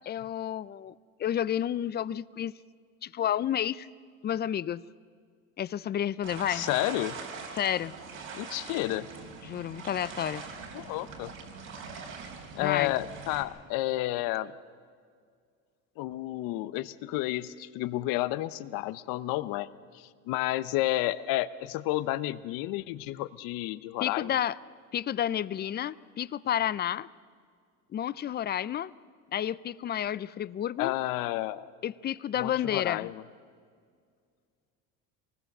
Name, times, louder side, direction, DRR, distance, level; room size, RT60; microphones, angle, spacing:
voice 1, 0.1-2.5 3.0-3.9 4.2-4.8 5.6-6.7 7.5-7.9 9.4-10.4 12.6-12.9 24.0-24.6 24.9-27.1 27.9-28.9 29.3-30.9 31.8-33.1, left 10 dB, 30° left, 19 dB, 0.5 m, -30 dB
sound 1, 6.2-13.4, right 5 dB, 60° right, 3.8 m, -43 dB
voice 2, 6.5-7.2 8.3-9.1 10.7-11.3 12.5-14.5 16.0-19.7 19.9-24.4 30.8-31.7 32.3-33.2, left 16 dB, 75° left, 15 dB, 0.9 m, -31 dB
24.0 x 19.5 x 6.7 m, 2.1 s
cardioid pair, 115°, 34 cm